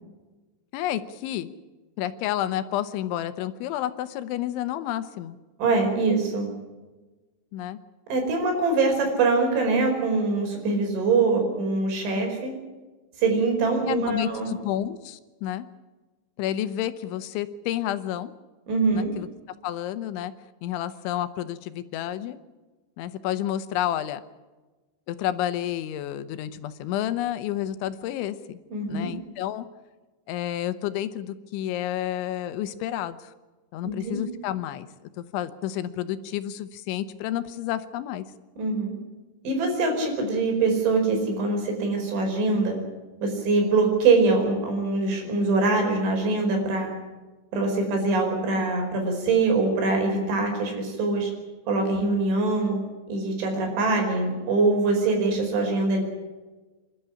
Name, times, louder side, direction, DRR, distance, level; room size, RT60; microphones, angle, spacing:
voice 1, 0.7-1.5 2.0-5.4 7.5-7.8 13.9-15.7 16.4-18.3 18.9-19.3 19.6-20.3 20.6-22.4 23.0-24.2 25.1-28.6 28.9-29.7 30.3-33.3 33.7-34.9 35.2-38.3, left 12 dB, 85° left, 12 dB, 3.5 m, -30 dB
voice 2, 5.6-6.5 8.1-12.5 13.2-14.5 18.7-19.1 28.7-29.1 33.8-34.2 38.6-39.0 39.4-42.8 43.2-46.9 47.5-51.3 51.7-52.8 53.1-56.0, right 3 dB, 80° right, 2 dB, 7.3 m, -23 dB
27.5 x 12.5 x 10.0 m, 1.2 s
omnidirectional pair, 5.3 m